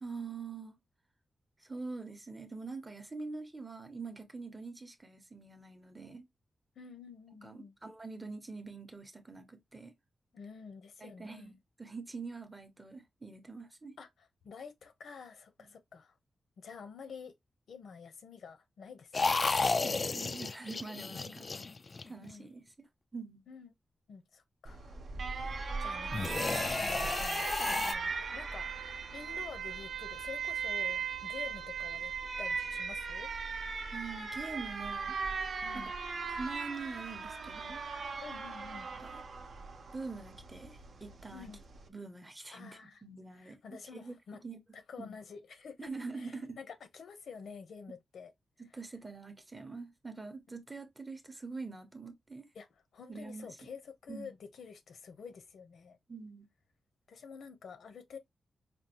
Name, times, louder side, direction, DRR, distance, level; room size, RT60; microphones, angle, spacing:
voice 1, 0.0-0.7 1.6-6.3 7.4-9.9 11.0-11.5 11.8-13.9 15.6-15.7 19.8-21.5 22.1-23.5 33.9-35.2 35.7-35.9 36.3-37.8 38.9-39.2 39.9-41.5 41.9-44.2 44.4-44.6 45.0-45.1 45.8-46.6 48.6-52.5 53.1-53.6 54.1-54.3 56.1-56.5, right 4 dB, 15° right, 0.8 m, -44 dB
voice 2, 6.8-7.8 10.3-11.6 14.0-14.1 14.4-16.1 16.6-17.3 17.7-19.4 21.3-21.7 22.1-22.5 23.5-23.7 24.1-25.0 25.3-32.1 32.4-33.3 35.6-35.9 38.2-38.9 41.3-41.6 42.5-43.0 43.3-44.4 44.7-45.9 46.1-48.3 52.5-56.0 57.1-58.2, left 6 dB, 85° left, 0.9 m, -49 dB
sound 1, 19.1-22.3 26.1-27.9, left 3 dB, 35° left, 0.3 m, -32 dB
Alarm, 24.6-41.9, right 5 dB, 55° right, 0.7 m, -38 dB
5.1 x 2.4 x 2.9 m
wide cardioid pair, 180°, 0 cm